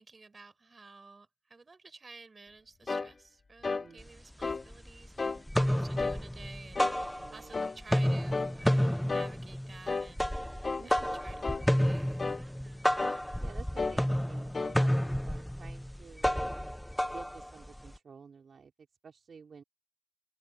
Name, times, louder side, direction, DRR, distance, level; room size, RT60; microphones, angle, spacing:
voice 1, 0.0-10.3 10.8-13.0, right 3 dB, 25° right, 5.9 m, -53 dB
sound 1, 2.9-3.1 3.6-3.9 4.4-4.7 5.2-5.4 6.0-6.2 6.8-7.0 7.5-7.8 8.3-8.5 9.1-9.3 9.9-10.1 10.6-10.9 11.4-11.7 12.2-12.4 13.0-13.2 13.8-14.0 14.5-14.8, left 4 dB, 30° left, 1.5 m, -33 dB
voice 2, 3.7-4.1 7.2-7.6 10.8-11.5 13.4-16.5 17.1-18.7 19.0-19.6, right 5 dB, 45° right, 4.0 m, -52 dB
sound 2, 4.0-4.1 4.4-5.1 5.4-7.6 7.8-18.0, equal, ahead, 0.4 m, -31 dB
open air
cardioid pair, 90°, 0 cm